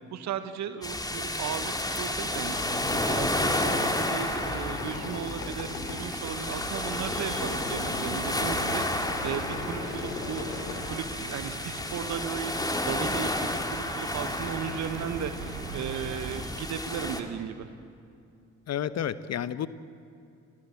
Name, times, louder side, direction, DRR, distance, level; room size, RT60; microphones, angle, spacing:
voice 1, 0.1-2.6 2.9-17.7, right 8 dB, 50° right, 9 dB, 1.5 m, -36 dB
sound 1, 0.8-17.2, left 1 dB, 10° left, 2.8 m, -31 dB
Squeak, 2.2-11.8, left 3 dB, 80° left, 2.6 m, -39 dB
sound 2, 6.2-16.4, right 4 dB, 75° right, 2.9 m, -42 dB
voice 2, 18.7-19.7, left 9 dB, 45° left, 15 dB, 1.1 m, -30 dB
29.5 x 14.0 x 9.0 m, 2.5 s
figure-of-eight pair, 45°, 36 cm